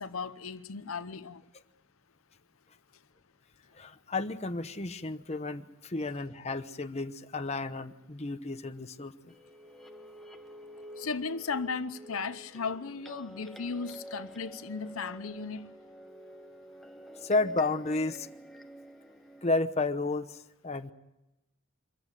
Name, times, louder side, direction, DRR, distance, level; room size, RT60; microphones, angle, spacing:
voice 1, 0.0-1.4 11.0-15.7, left 4 dB, 80° left, 0.8 m, -36 dB
voice 2, 3.7-9.3 17.2-18.3 19.4-20.9, left 3 dB, 30° left, 0.9 m, -32 dB
sound 1, 9.3-19.6, equal, ahead, 1.0 m, -49 dB
25.0 x 14.5 x 9.1 m
head